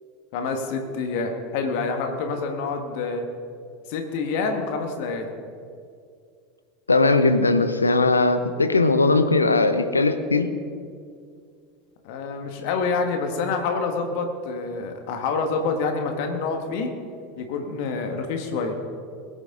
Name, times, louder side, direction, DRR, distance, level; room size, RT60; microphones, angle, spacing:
voice 1, 0.3-3.2 3.9-5.3 12.0-16.9 17.4-18.8, left 4 dB, 60° left, 5 dB, 1.7 m, -27 dB
voice 2, 6.9-10.5, left 3 dB, 90° left, 9 dB, 0.8 m, -19 dB
21.0 x 9.7 x 3.9 m, 2.3 s
figure-of-eight pair, 80°, 0 cm